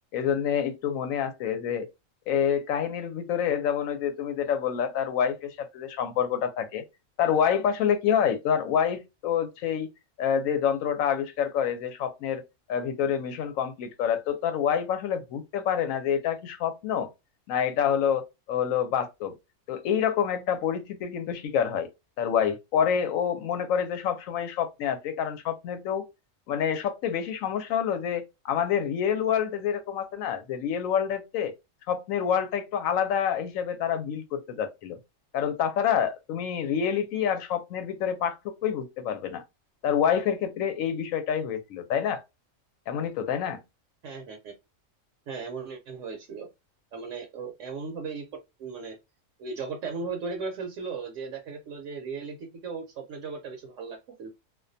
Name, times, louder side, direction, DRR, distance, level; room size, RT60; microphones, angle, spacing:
voice 1, 0.1-1.9 2.3-6.8 7.2-9.9 10.2-12.4 12.7-17.1 17.5-19.3 19.7-21.9 22.2-26.0 26.5-31.5 31.9-35.0 35.3-39.4 39.8-42.2 42.9-43.6, left 8 dB, 85° left, 1.0 m, -27 dB
voice 2, 44.0-44.5 45.3-46.5 46.9-48.3 48.6-49.0 49.4-54.3, right 4 dB, 75° right, 0.9 m, -36 dB
2.4 x 2.2 x 2.6 m
omnidirectional pair, 1.4 m